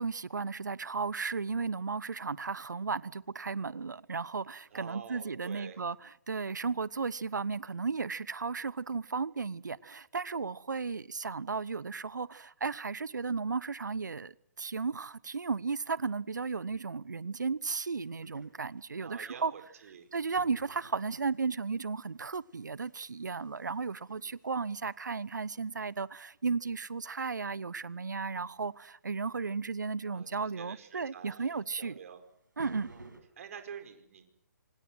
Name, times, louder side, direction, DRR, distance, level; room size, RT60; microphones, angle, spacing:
voice 1, 0.0-5.9 6.3-19.5 20.1-31.9 32.6-32.9, right 4 dB, 70° right, 1.1 m, -34 dB
voice 2, 4.7-5.8 19.0-20.1 30.1-32.2 32.9-33.1 33.4-34.3, right 7 dB, 50° right, 4.9 m, -48 dB
sound 1, 18.0-33.2, right 2 dB, 85° right, 6.9 m, -57 dB
26.5 x 25.5 x 6.3 m
figure-of-eight pair, 135°, 10 cm